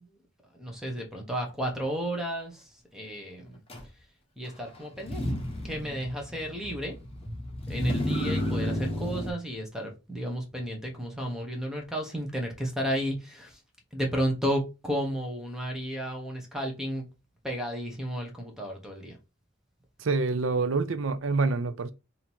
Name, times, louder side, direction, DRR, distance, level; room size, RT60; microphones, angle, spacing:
voice 1, 0.6-2.6 2.9-3.6 4.4-5.2 5.6-6.9 7.7-13.5 13.9-17.0 17.4-19.2, equal, 5° right, 1.1 m, -32 dB
Motor vehicle (road), 3.7-3.8 5.0-9.3, left 1 dB, 30° left, 1.1 m, -32 dB
voice 2, 20.0-21.9, right 3 dB, 80° right, 0.6 m, -26 dB
3.7 x 2.8 x 4.4 m
head